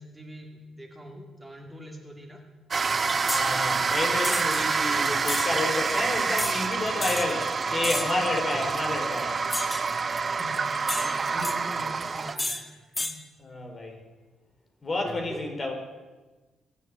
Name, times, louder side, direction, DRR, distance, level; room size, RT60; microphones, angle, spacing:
voice 1, 0.0-2.4 8.5-8.8 10.3-13.2 15.0-15.5, equal, 15° right, 2 dB, 2.3 m, -43 dB
sound 1, 2.7-12.4, right 5 dB, 35° right, 0.7 m, -27 dB
voice 2, 3.3-9.3 13.4-14.0 14.8-15.7, left 2 dB, 35° left, 3 dB, 4.1 m, -30 dB
sound 2, 3.3-3.5 4.2-4.6 5.3-5.5 6.4-6.6 7.0-7.3 7.8-8.2 9.5-9.9 10.9-11.6 12.4-12.6 13.0-13.2, left 2 dB, 15° left, 1.6 m, -31 dB
22.5 x 7.5 x 8.6 m, 1.3 s
cardioid pair, 90°, 0 cm